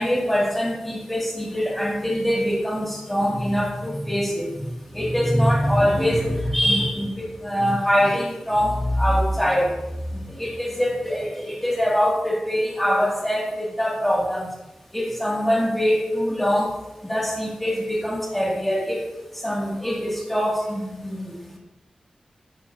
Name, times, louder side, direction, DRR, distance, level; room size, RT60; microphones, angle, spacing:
voice 1, 0.0-4.7 4.9-9.7 10.1-14.5 14.9-16.7 17.1-19.1 19.4-21.6, equal, 5° left, -3 dB, 2.3 m, -23 dB
12.0 x 7.3 x 2.8 m, 1.0 s
wide cardioid pair, 125°, 2 cm